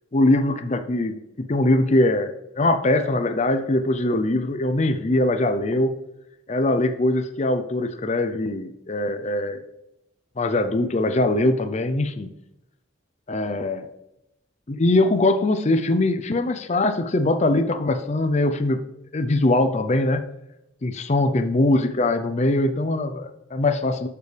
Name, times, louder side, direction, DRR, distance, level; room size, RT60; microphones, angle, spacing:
voice 1, 0.1-5.9 6.5-9.6 10.4-12.3 13.3-13.9 14.7-18.8 19.1-20.2 20.8-24.1, left 2 dB, 35° left, 9 dB, 0.5 m, -22 dB
12.0 x 6.8 x 3.3 m, 0.87 s
head